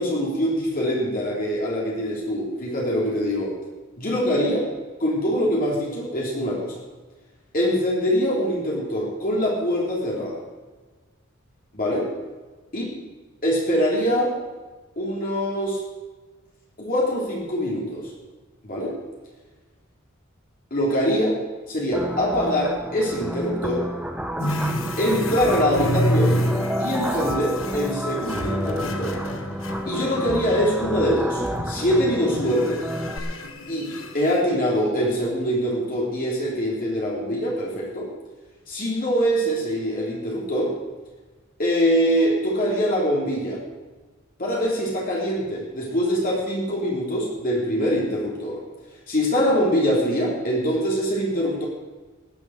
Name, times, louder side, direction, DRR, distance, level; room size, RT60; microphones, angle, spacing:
voice 1, 0.0-3.5 4.0-4.7 5.0-6.8 7.5-10.4 11.7-12.1 12.7-12.8 13.4-14.3 15.0-15.8 16.8-18.1 18.6-19.0 20.7-21.4 21.7-23.8 25.0-26.4 26.8-29.2 29.8-32.8 33.7-38.1 38.7-40.7 41.6-43.6 44.4-48.6 49.1-51.6, equal, 45° left, -3 dB, 3.3 m, -23 dB
sound 1, 21.9-33.2, equal, 5° right, 0.9 m, -30 dB
sound 2, 24.4-30.8 31.3-31.9 32.4-34.4, equal, 70° left, 1.4 m, -29 dB
18.5 x 7.4 x 6.4 m, 1.3 s
head